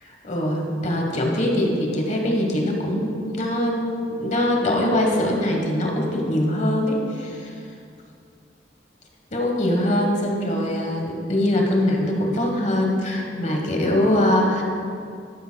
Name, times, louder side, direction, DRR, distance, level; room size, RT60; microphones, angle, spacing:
voice 1, 0.0-7.6 9.3-14.6, left 1 dB, 40° left, 0 dB, 1.2 m, -22 dB
12.0 x 10.0 x 2.2 m, 2.4 s
head